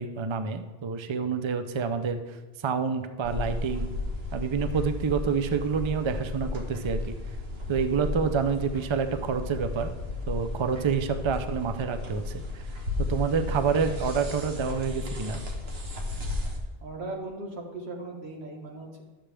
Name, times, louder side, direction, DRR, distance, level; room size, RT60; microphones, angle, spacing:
voice 1, 0.0-3.9 4.3-7.1 7.7-9.9 10.3-12.8 13.1-15.4, right 6 dB, 35° right, 8 dB, 0.5 m, -28 dB
sound 1, 3.2-16.6, left 2 dB, 75° right, 1.4 m, -34 dB
voice 2, 16.8-19.0, right 2 dB, 90° right, 1 dB, 1.7 m, -38 dB
11.5 x 7.4 x 3.4 m, 1.2 s
omnidirectional pair, 1.1 m